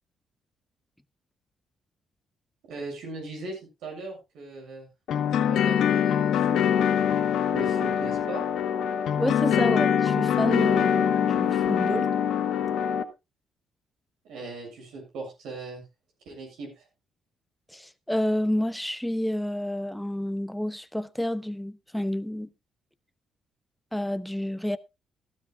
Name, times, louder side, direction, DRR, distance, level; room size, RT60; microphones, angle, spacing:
voice 1, 2.7-4.9 5.4-7.1 7.5-8.4 14.2-15.8 16.3-16.9, right 3 dB, 85° right, 7.1 m, -39 dB
sound 1, 5.1-13.0, left 8 dB, 75° left, 1.1 m, -24 dB
voice 2, 9.2-12.1 17.7-22.5 23.9-24.8, left 1 dB, 5° left, 0.8 m, -29 dB
15.5 x 12.5 x 2.4 m
cardioid pair, 90°, 0 cm